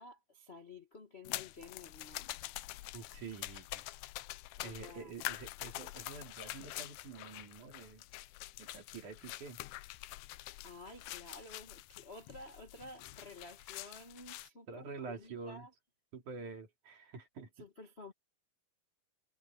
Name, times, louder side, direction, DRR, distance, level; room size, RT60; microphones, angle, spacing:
voice 1, 0.0-2.3 4.6-5.1 10.6-15.7 17.6-18.1, left 2 dB, 40° left, 0.9 m, -52 dB
sound 1, 1.2-14.5, left 17 dB, 75° left, 2.1 m, -46 dB
voice 2, 2.9-3.8 4.6-8.0 8.6-9.6 14.7-15.7 16.1-17.5, right 5 dB, 60° right, 4.2 m, -47 dB
omnidirectional pair, 4.0 m